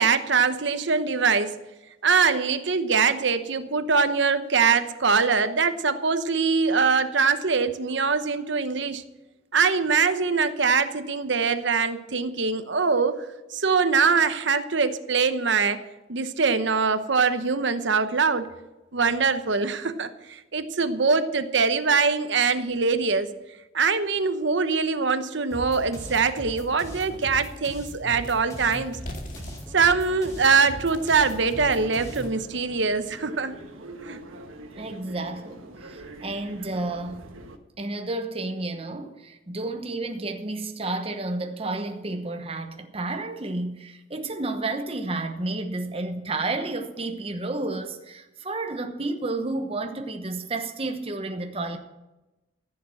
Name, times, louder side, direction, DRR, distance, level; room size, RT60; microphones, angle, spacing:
voice 1, 0.0-1.5 2.0-9.0 9.5-13.2 13.5-15.8 16.1-18.5 18.9-23.3 23.7-29.0 29.7-33.5 34.0-34.2, right 5 dB, 60° right, 0.9 m, -23 dB
sound 1, 25.4-25.5 26.0-26.1 26.5-32.5, left 1 dB, 40° left, 2.1 m, -45 dB
sound 2, 25.5-32.3, equal, 15° left, 3.2 m, -39 dB
sound 3, 31.4-37.6, right 1 dB, 85° right, 1.4 m, -44 dB
voice 2, 34.8-37.3 37.8-51.8, right 2 dB, 30° right, 1.0 m, -31 dB
15.0 x 7.2 x 7.6 m
head